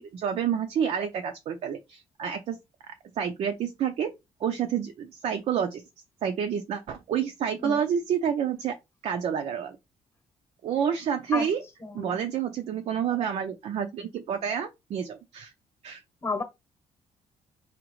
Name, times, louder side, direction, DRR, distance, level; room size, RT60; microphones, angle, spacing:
voice 1, 0.0-2.6 3.1-4.1 4.4-5.8 6.2-8.7 9.0-9.8 10.6-11.6 11.9-15.5 15.8-16.0, right 8 dB, 55° right, 0.6 m, -29 dB
voice 2, 11.8-12.2 16.2-16.4, left 3 dB, 20° left, 1.0 m, -31 dB
5.0 x 2.9 x 3.1 m
cardioid pair, 155°, 13 cm